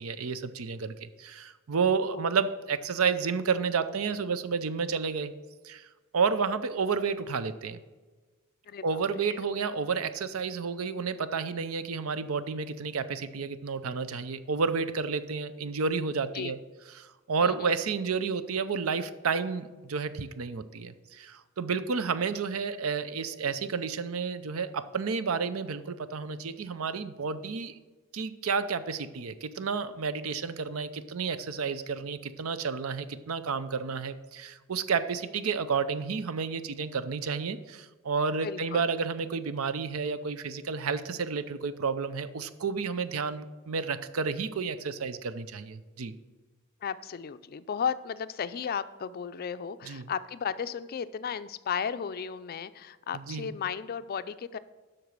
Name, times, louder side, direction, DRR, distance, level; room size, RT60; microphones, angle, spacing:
voice 1, 0.0-5.3 5.6-5.9 6.1-7.8 8.8-16.6 16.9-27.8 28.1-46.1 49.8-50.1 53.1-53.5, right 5 dB, 80° right, 13 dB, 0.6 m, -31 dB
voice 2, 8.7-9.0 16.3-16.5 17.4-17.7 38.4-38.8 46.8-54.6, left 7 dB, 45° left, 14 dB, 0.4 m, -34 dB
7.8 x 5.9 x 6.6 m, 1.3 s
head